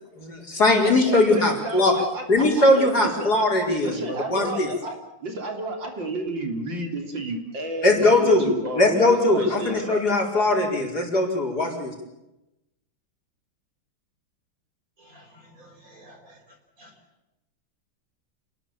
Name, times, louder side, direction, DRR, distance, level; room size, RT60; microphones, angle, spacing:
voice 1, 0.2-2.0 2.3-4.7 7.8-11.9, left 2 dB, 50° left, 1 dB, 5.3 m, -20 dB
voice 2, 0.8-3.3 3.8-5.0 5.2-10.0, right 2 dB, 60° right, 4 dB, 4.1 m, -31 dB
voice 3, 15.0-16.4 16.8-16.9, equal, 40° right, 4 dB, 5.5 m, -51 dB
28.5 x 20.5 x 7.0 m, 0.92 s
omnidirectional pair, 2.2 m